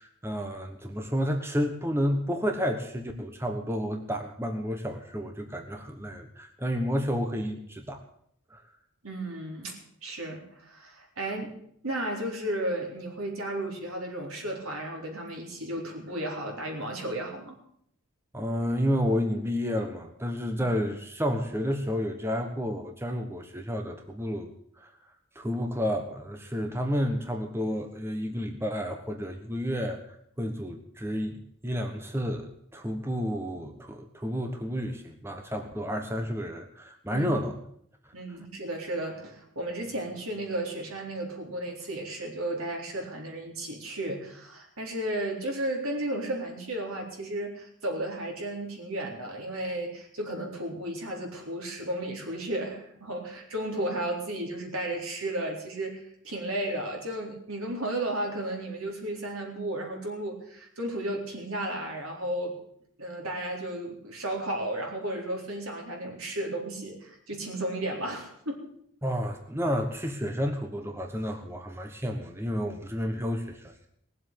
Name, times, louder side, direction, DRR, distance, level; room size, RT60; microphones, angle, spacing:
voice 1, 0.0-8.0 8.5-8.6 18.3-24.9 25.3-30.0 30.4-37.5 69.0-73.9, equal, 10° right, 5 dB, 1.1 m, -31 dB
voice 2, 9.0-11.6 11.8-17.6 37.1-37.3 38.1-62.6 63.0-68.7, right 1 dB, 85° right, 1 dB, 3.9 m, -34 dB
19.0 x 7.8 x 8.5 m, 0.68 s
head